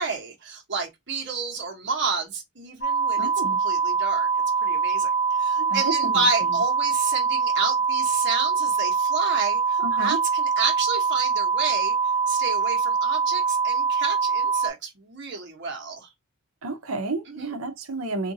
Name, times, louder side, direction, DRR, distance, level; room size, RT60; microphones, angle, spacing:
voice 1, 0.0-3.3 3.6-4.3 4.6-5.1 5.4-11.9 12.3-16.1 17.3-17.5, right 4 dB, 55° right, 1.1 m, -30 dB
sound 1, 2.8-14.7, right 5 dB, 55° left, 1.1 m, -24 dB
voice 2, 3.2-3.6 5.6-6.6 9.8-10.2 16.6-18.3, right 3 dB, 75° right, 0.8 m, -31 dB
3.6 x 2.6 x 2.7 m
head